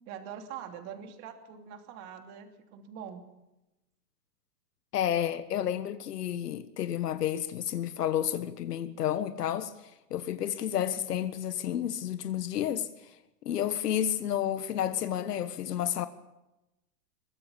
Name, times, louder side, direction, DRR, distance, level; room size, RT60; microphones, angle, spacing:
voice 1, 0.1-3.3, right 8 dB, 30° right, 2.9 m, -43 dB
voice 2, 4.9-9.7 10.1-12.9 13.4-16.1, left 10 dB, 75° left, 1.5 m, -30 dB
23.0 x 19.5 x 7.3 m
hypercardioid pair, 155°, 48 cm